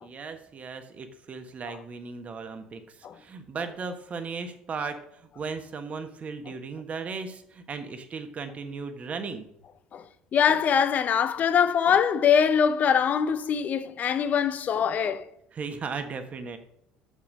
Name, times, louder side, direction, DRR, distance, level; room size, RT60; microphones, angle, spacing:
voice 1, 0.0-9.5 15.5-16.6, right 4 dB, 40° right, 1.3 m, -36 dB
voice 2, 10.3-15.3, left 7 dB, 45° left, 0.7 m, -23 dB
6.8 x 5.7 x 6.3 m
hypercardioid pair, 70°, 4 cm